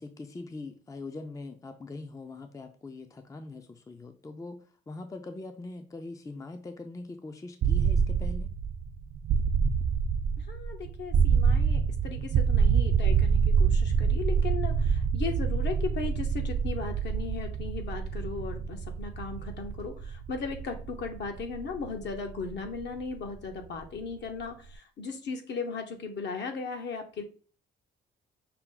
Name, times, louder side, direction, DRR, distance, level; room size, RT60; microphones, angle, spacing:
voice 1, 0.0-8.5, left 3 dB, 15° left, 7 dB, 0.5 m, -42 dB
sound 1, 7.6-23.4, right 6 dB, 50° right, 0.4 m, -27 dB
voice 2, 10.5-27.2, left 4 dB, 60° left, 4 dB, 1.0 m, -37 dB
5.7 x 2.1 x 3.8 m, 0.39 s
cardioid pair, 90°, 20 cm